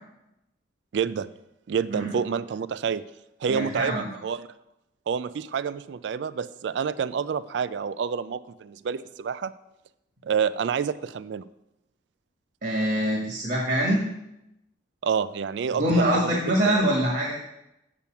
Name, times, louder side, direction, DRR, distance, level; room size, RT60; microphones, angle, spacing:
voice 1, 0.9-1.3 1.7-3.0 3.4-4.5 5.1-9.5 10.2-11.5 15.0-16.4 16.7-16.9, right 6 dB, 70° right, 15 dB, 0.3 m, -28 dB
voice 2, 3.5-4.0 12.6-14.1 15.7-17.4, equal, 55° right, -2 dB, 1.4 m, -24 dB
7.0 x 6.9 x 5.9 m, 0.87 s
head